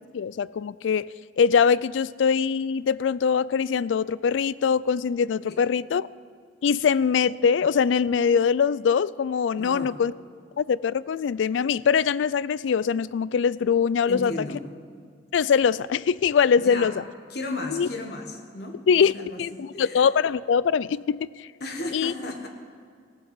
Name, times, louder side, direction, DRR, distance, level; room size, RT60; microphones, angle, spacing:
voice 1, 0.1-6.1 6.6-10.1 10.6-14.3 15.3-16.9 17.7-17.9 18.9-21.5 21.9-22.1, left 6 dB, 85° left, 20 dB, 0.3 m, -23 dB
voice 2, 9.6-10.0 14.1-14.6 16.6-16.9 17.3-18.8 19.1-20.0 21.6-22.5, left 2 dB, 60° left, 3 dB, 1.3 m, -34 dB
18.0 x 7.9 x 7.4 m, 2.1 s
head